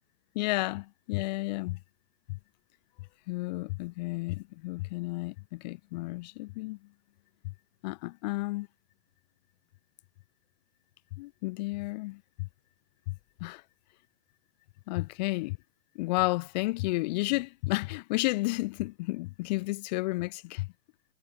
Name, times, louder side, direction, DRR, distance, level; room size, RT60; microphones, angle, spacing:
voice 1, 0.3-1.8 2.3-2.4 3.3-6.8 7.8-8.7 11.1-12.5 13.1-13.2 13.4-13.6 14.9-15.6 15.9-20.7, left 22 dB, 30° left, 0.7 m, -32 dB
figure-of-eight pair, 115°, 42 cm